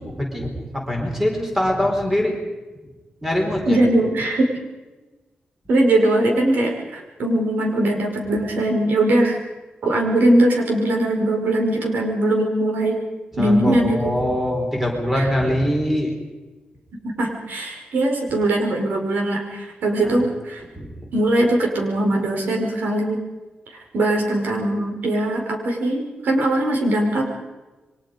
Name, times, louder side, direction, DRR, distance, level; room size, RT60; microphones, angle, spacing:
voice 1, 0.0-2.4 3.2-3.8 13.4-16.1 20.0-20.2 20.8-21.0, left 1 dB, 10° right, 1 dB, 4.3 m, -23 dB
voice 2, 3.6-4.5 5.7-9.4 9.8-13.0 13.4-14.2 15.1-15.3 17.0-20.6 21.1-23.2 23.9-27.2, right 1 dB, 80° right, 1 dB, 5.3 m, -20 dB
28.5 x 23.5 x 5.3 m, 1.2 s
wide cardioid pair, 175°, 3 cm